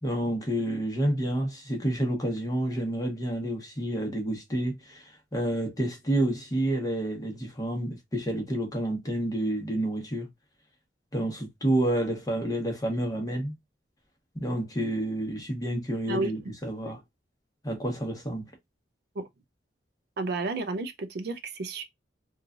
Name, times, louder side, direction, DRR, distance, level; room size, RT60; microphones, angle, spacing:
voice 1, 0.0-10.3 11.1-13.5 14.3-17.0 17.6-18.4, right 1 dB, 20° left, 0.9 m, -29 dB
voice 2, 20.2-21.8, right 3 dB, 60° right, 0.4 m, -31 dB
3.1 x 2.3 x 2.4 m
head